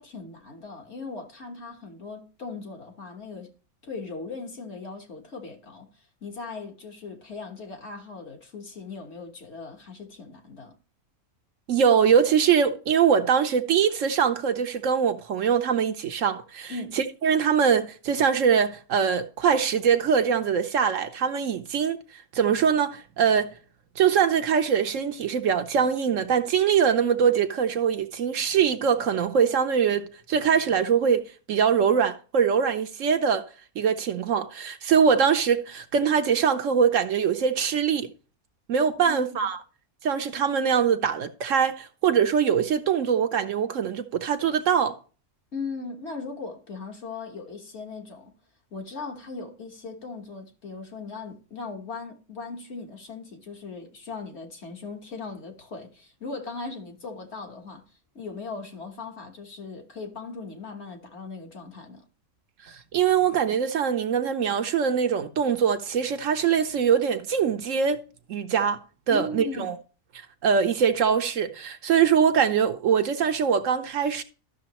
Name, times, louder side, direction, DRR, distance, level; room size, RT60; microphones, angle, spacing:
voice 1, 0.0-3.5 3.8-10.7 16.7-17.0 39.0-39.5 45.5-48.3 48.7-57.8 58.1-62.1 69.1-69.7, left 4 dB, 50° left, 1.6 m, -38 dB
voice 2, 11.7-23.5 24.0-33.5 33.8-38.1 38.7-39.6 40.0-45.0 62.6-68.0 68.3-68.8 69.1-69.7 70.4-74.2, right 7 dB, 65° right, 1.0 m, -23 dB
12.5 x 6.4 x 3.0 m
omnidirectional pair, 1.5 m